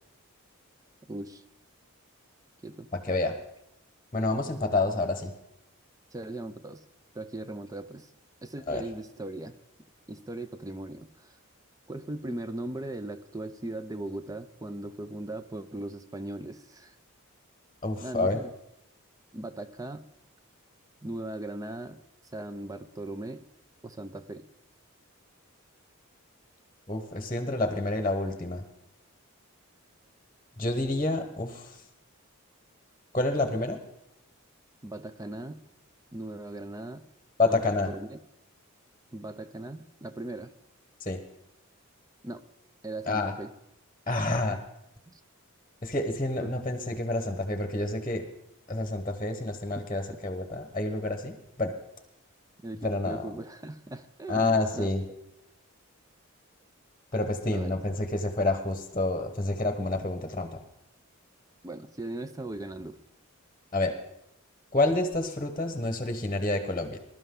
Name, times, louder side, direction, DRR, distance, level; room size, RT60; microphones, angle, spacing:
voice 1, 1.1-1.4 2.6-2.9 6.1-6.8 7.1-8.1 8.4-9.6 10.1-11.4 11.9-17.0 18.0-18.5 19.3-20.0 21.0-22.0 22.3-23.4 23.8-24.4 34.8-35.6 36.1-37.0 37.4-37.6 37.9-38.2 39.1-40.5 42.2-42.4 42.8-43.5 44.5-44.6 45.1-45.2 46.4-46.5 52.6-55.0 57.5-57.8 61.6-63.0, right 1 dB, 15° right, 11 dB, 0.5 m, -38 dB
voice 2, 2.9-3.4 4.1-5.3 8.7-8.8 17.8-18.4 26.9-28.6 30.6-31.8 33.1-33.8 37.4-37.9 41.0-41.2 43.1-43.3 44.1-44.6 45.8-48.2 48.7-51.7 52.8-53.2 54.3-55.0 57.1-60.6 63.7-63.9 64.7-67.0, left 2 dB, 20° left, 6 dB, 1.1 m, -28 dB
21.5 x 12.5 x 3.8 m, 0.82 s
head